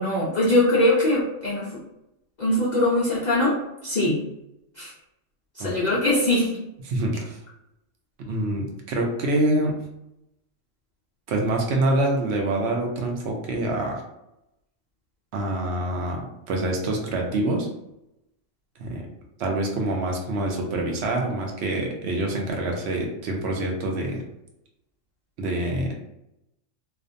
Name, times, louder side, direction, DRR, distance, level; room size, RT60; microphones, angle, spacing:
voice 1, 0.0-1.8 2.4-4.2 4.8-4.9 5.6-6.5, left 1 dB, 65° left, -7 dB, 0.4 m, -22 dB
voice 2, 6.9-7.4 8.2-9.7 11.3-14.0 15.3-17.7 18.8-19.0 19.4-24.2 25.4-26.0, right 1 dB, 65° right, 0 dB, 0.7 m, -26 dB
2.5 x 2.2 x 2.5 m, 0.85 s
omnidirectional pair, 1.4 m